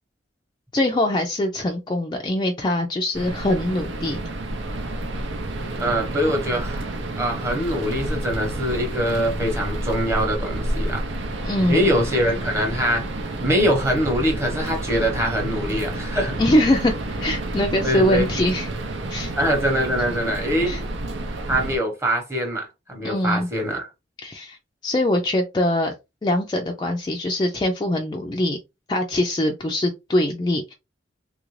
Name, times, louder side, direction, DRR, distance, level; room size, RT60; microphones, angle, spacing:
voice 1, 0.7-4.2 11.4-11.9 16.4-18.7 19.1-19.3 20.7-20.8 23.0-23.5 24.2-24.6 24.8-25.9 26.2-28.6 28.9-30.7, left 1 dB, 25° left, 0.4 m, -23 dB
sound 1, 3.1-21.8, right 1 dB, 85° right, 0.7 m, -29 dB
voice 2, 5.8-6.9 7.2-11.0 11.7-13.1 13.4-16.4 17.8-18.3 19.4-20.8 21.5-23.9, equal, 15° right, 0.9 m, -23 dB
3.2 x 2.5 x 3.1 m
head